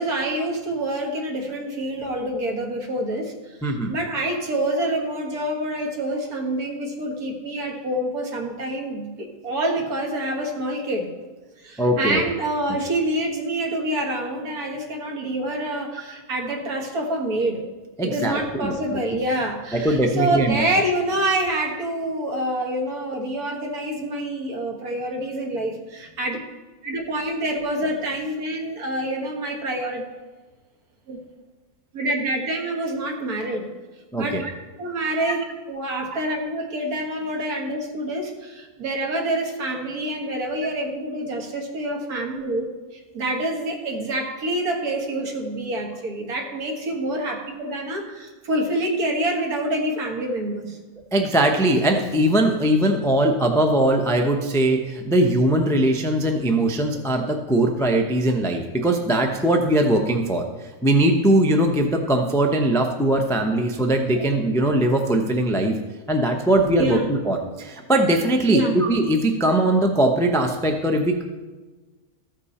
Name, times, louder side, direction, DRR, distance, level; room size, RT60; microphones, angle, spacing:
voice 1, 0.0-3.3 3.6-11.1 11.6-17.7 18.0-26.4 26.8-30.0 31.1-31.2 31.9-33.7 34.2-34.3 34.8-35.4 35.7-42.7 42.9-50.8 64.1-64.7 66.8-67.1 68.5-68.8, right 1 dB, 75° right, 1 dB, 1.8 m, -27 dB
voice 2, 11.8-12.2 18.0-19.2 19.7-20.6 34.1-34.5 35.2-35.3 36.1-36.2 51.1-65.8 66.1-71.2, right 1 dB, 5° left, 3 dB, 0.4 m, -21 dB
14.0 x 5.3 x 4.2 m, 1.3 s
omnidirectional pair, 1.6 m